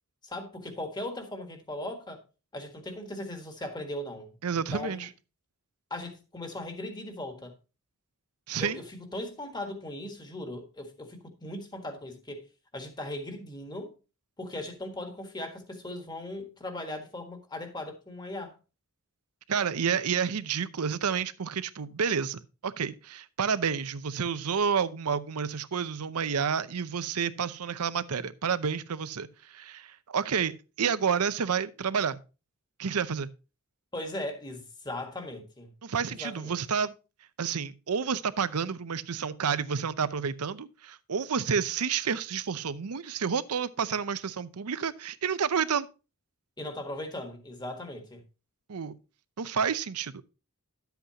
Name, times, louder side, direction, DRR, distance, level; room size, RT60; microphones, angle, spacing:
voice 1, 0.2-2.2 2.5-5.1 5.9-7.5 8.6-12.5 12.7-13.9 14.4-18.6 33.9-35.7 36.1-36.6 46.6-48.2, left 1 dB, 20° left, 1.6 m, -38 dB
voice 2, 4.4-5.1 8.5-8.8 19.5-30.5 30.8-32.2 32.8-33.3 35.8-36.9 37.4-45.9 48.7-48.9 49.4-50.2, right 6 dB, 90° right, 0.6 m, -30 dB
11.5 x 8.1 x 2.9 m
head